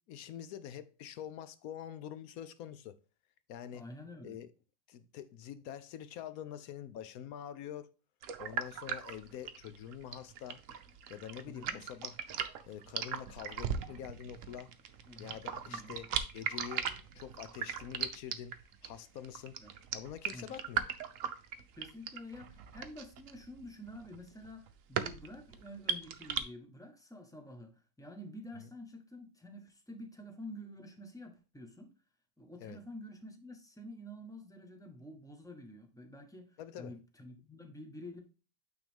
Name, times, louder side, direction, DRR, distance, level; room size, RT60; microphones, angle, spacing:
voice 1, 0.1-3.0 3.5-3.8 4.2-4.5 4.9-7.9 8.4-10.6 11.1-12.2 12.7-14.7 15.2-18.5 18.8-19.6 19.9-20.8 32.6-32.8 36.6-36.9, left 9 dB, 70° left, 0.9 m, -45 dB
voice 2, 3.7-4.4 11.5-11.8 15.1-15.4 15.7-16.0 19.6-19.7 20.3-20.6 21.8-31.9 32.4-38.2, left 1 dB, 5° left, 0.6 m, -49 dB
sound 1, 8.2-26.4, right 8 dB, 65° right, 0.9 m, -39 dB
8.9 x 3.9 x 3.5 m
omnidirectional pair, 1.8 m